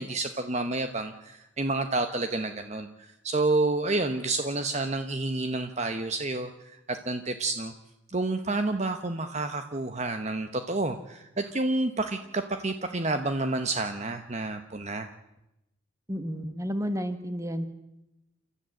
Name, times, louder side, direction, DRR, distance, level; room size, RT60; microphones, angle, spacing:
voice 1, 0.0-7.7 8.1-15.1, right 2 dB, 35° right, 8 dB, 1.0 m, -29 dB
voice 2, 16.1-17.7, equal, 15° right, 9 dB, 1.5 m, -31 dB
29.0 x 13.0 x 7.7 m, 0.92 s
head